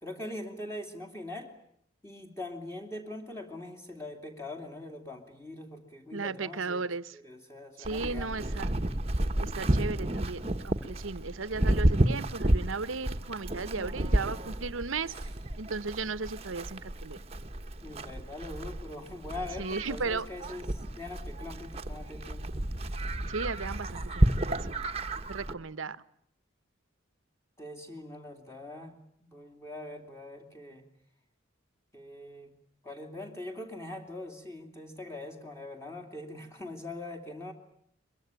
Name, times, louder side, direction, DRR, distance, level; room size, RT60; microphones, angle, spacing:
voice 1, 0.0-1.5 2.0-6.8 7.1-8.6 13.7-13.9 17.8-22.7 27.6-30.8 31.9-32.5 32.8-37.5, left 1 dB, 15° left, 3 dB, 2.8 m, -42 dB
voice 2, 6.1-7.1 7.8-8.7 9.4-15.1 15.6-17.2 19.6-20.3 23.3-24.6 25.3-26.0, right 4 dB, 85° right, 15 dB, 1.0 m, -35 dB
Livestock farm animals working animals, 7.8-25.5, right 1 dB, 30° right, 1.1 m, -31 dB
23.0 x 22.5 x 9.1 m, 0.68 s
head